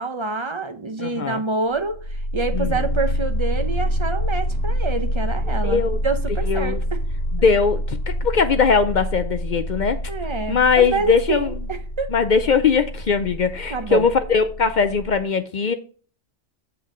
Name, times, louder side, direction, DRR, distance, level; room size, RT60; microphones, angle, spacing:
voice 1, 0.0-7.0 10.1-12.1 13.7-14.1, right 3 dB, 30° right, 0.6 m, -27 dB
voice 2, 1.0-1.4 2.5-2.8 5.6-6.0 6.4-6.8 7.3-10.0 10.5-11.5 12.1-15.7, left 5 dB, 60° left, 0.5 m, -20 dB
sound 1, 1.8-15.2, equal, 90° left, 1.8 m, -26 dB
7.3 x 5.7 x 3.7 m
omnidirectional pair, 1.3 m